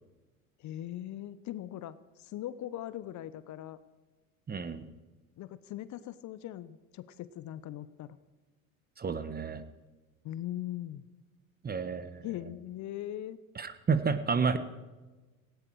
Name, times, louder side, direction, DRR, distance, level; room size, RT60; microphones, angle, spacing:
voice 1, 0.6-3.8 5.4-8.2 10.2-11.0 12.2-13.4, left 12 dB, 45° left, 15 dB, 0.9 m, -40 dB
voice 2, 4.5-4.8 9.0-9.6 11.6-12.3 13.6-14.6, right 5 dB, 20° right, 12 dB, 1.3 m, -30 dB
18.0 x 16.5 x 4.8 m, 1.2 s
hypercardioid pair, 75°, 42 cm